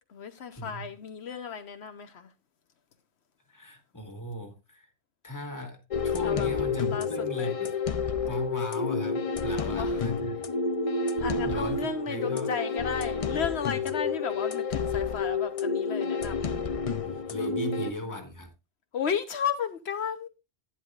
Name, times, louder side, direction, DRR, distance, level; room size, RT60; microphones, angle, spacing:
voice 1, 0.1-2.3 6.2-6.5 6.9-7.1 7.3-7.5 9.5-10.1 11.2-16.5 18.9-20.3, left 7 dB, 80° left, 1.1 m, -34 dB
voice 2, 3.5-4.9 5.2-7.7 8.2-10.4 11.4-12.5 16.9-18.5, left 1 dB, 15° left, 1.9 m, -37 dB
sound 1, 5.9-17.9, left 4 dB, 40° left, 0.6 m, -29 dB
11.0 x 10.0 x 2.4 m
omnidirectional pair, 1.1 m